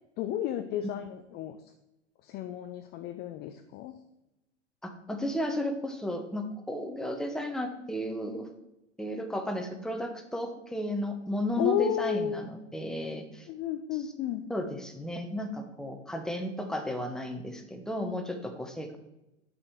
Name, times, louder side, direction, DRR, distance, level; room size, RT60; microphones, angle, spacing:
voice 1, 0.2-1.6 2.2-3.9 11.6-12.5 13.5-14.4, left 10 dB, 25° left, 8 dB, 0.5 m, -32 dB
voice 2, 4.8-8.5 9.0-13.5 14.5-19.0, equal, ahead, 5 dB, 1.0 m, -34 dB
7.2 x 5.2 x 6.2 m, 0.92 s
figure-of-eight pair, 90°, 37 cm